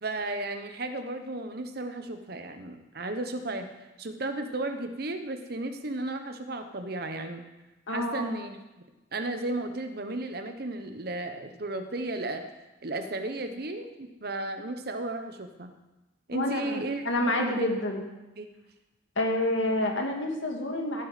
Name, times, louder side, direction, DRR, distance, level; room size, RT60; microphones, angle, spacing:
voice 1, 0.0-3.7 4.0-7.4 7.9-8.6 9.1-12.4 12.8-15.7 16.3-17.7 18.4-18.5, right 2 dB, 55° right, 7 dB, 1.0 m, -34 dB
voice 2, 7.9-8.3 16.3-18.0 19.2-21.0, left 1 dB, 80° left, 2 dB, 2.0 m, -28 dB
15.5 x 7.4 x 5.1 m, 1.1 s
head